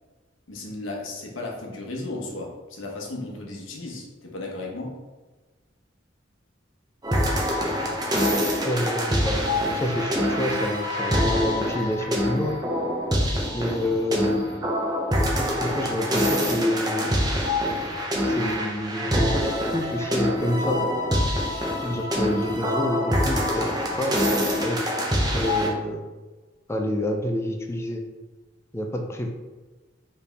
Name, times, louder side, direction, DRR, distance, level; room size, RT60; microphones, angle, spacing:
voice 1, 0.5-4.9, left 2 dB, 90° left, -1 dB, 1.0 m, -35 dB
sound 1, 7.0-25.7, equal, 20° right, 0.7 m, -25 dB
voice 2, 8.6-12.6 13.5-14.4 15.4-17.1 18.2-20.8 21.8-23.7 24.0-24.2 24.6-24.8 25.3-26.0 26.7-28.0 28.7-29.3, left 1 dB, 15° left, 2 dB, 0.4 m, -28 dB
4.6 x 3.3 x 3.4 m, 1.2 s
head